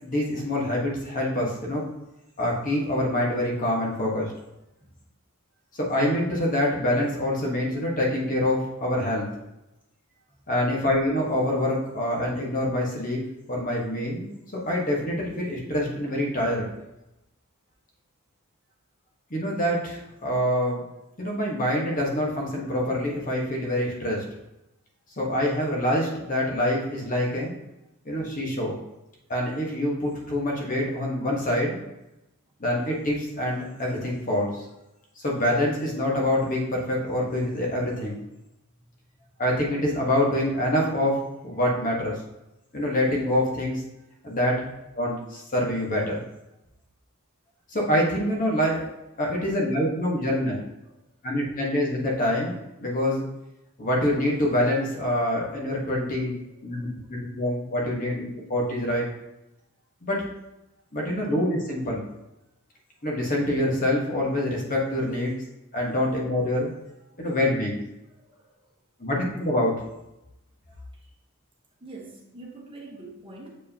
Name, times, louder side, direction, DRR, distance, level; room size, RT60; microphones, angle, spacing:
voice 1, 0.0-1.8 2.4-4.3 5.7-9.3 10.5-13.2 13.5-14.3 14.6-16.7 19.3-20.8 21.2-24.2 25.2-27.5 28.0-28.7 29.3-31.8 32.6-34.6 35.2-38.2 39.4-42.1 42.7-43.8 44.2-46.2 47.7-48.8 49.2-50.6 51.2-52.5 52.8-53.3 53.8-56.4 56.6-59.0 60.0-60.2 60.9-62.1 63.0-65.3 65.7-66.7 67.2-67.8 69.0-69.7, left 1 dB, 40° left, -2 dB, 1.3 m, -25 dB
voice 2, 68.2-68.5 71.8-73.5, right 2 dB, 25° right, -1 dB, 1.2 m, -44 dB
7.3 x 4.6 x 2.9 m, 0.92 s
head